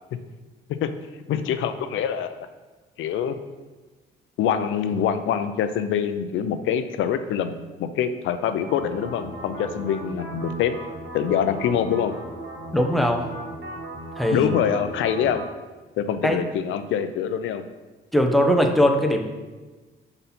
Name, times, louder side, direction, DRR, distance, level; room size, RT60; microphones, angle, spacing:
voice 1, 1.3-2.5 3.0-3.4 4.4-10.8 11.1-12.1 14.3-15.4 16.0-17.6, left 8 dB, 80° left, 10 dB, 0.5 m, -25 dB
sound 1, 8.6-15.4, right 2 dB, 60° right, 1.4 m, -37 dB
voice 2, 12.7-13.2 14.2-14.5 16.2-16.4 18.1-19.2, equal, ahead, 3 dB, 0.8 m, -20 dB
5.5 x 4.0 x 5.8 m, 1.3 s
cardioid pair, 90°, 20 cm